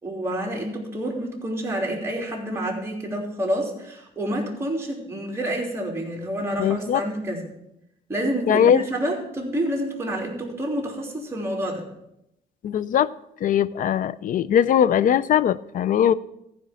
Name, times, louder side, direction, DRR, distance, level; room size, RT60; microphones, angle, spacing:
voice 1, 0.0-7.4 8.1-11.8, right 1 dB, 15° right, -1 dB, 3.2 m, -28 dB
voice 2, 6.6-7.0 8.5-8.8 12.6-13.1 13.4-16.1, left 9 dB, 60° left, 18 dB, 0.5 m, -20 dB
14.5 x 5.2 x 7.0 m, 0.82 s
cardioid pair, 100°, 16 cm